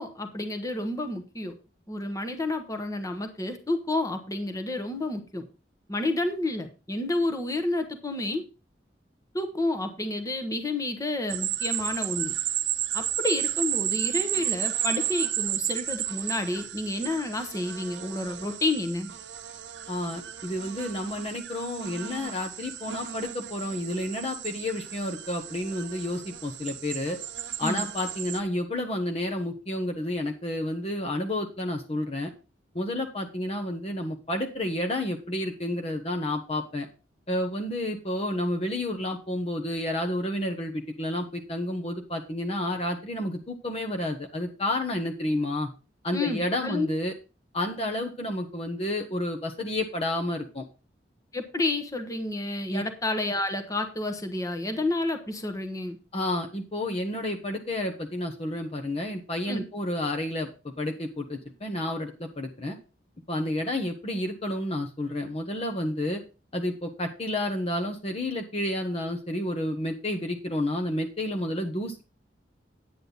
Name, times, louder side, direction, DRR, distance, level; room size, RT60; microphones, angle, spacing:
voice 1, 0.0-1.6 1.9-5.4 5.9-8.4 9.3-12.4 12.9-19.1 27.6-27.8 46.1-46.9 51.3-56.0 59.5-59.6, left 2 dB, 20° left, 7 dB, 1.2 m, -30 dB
sound 1, 11.3-28.4, right 12 dB, 70° right, 0.8 m, -33 dB
voice 2, 19.9-27.2 27.6-32.3 32.7-36.9 37.3-45.7 46.0-47.1 47.5-50.7 52.7-52.8 56.1-60.5 60.8-62.8 63.3-66.2 66.5-72.0, left 1 dB, 35° left, 3 dB, 1.1 m, -30 dB
9.7 x 8.9 x 4.0 m, 0.31 s
head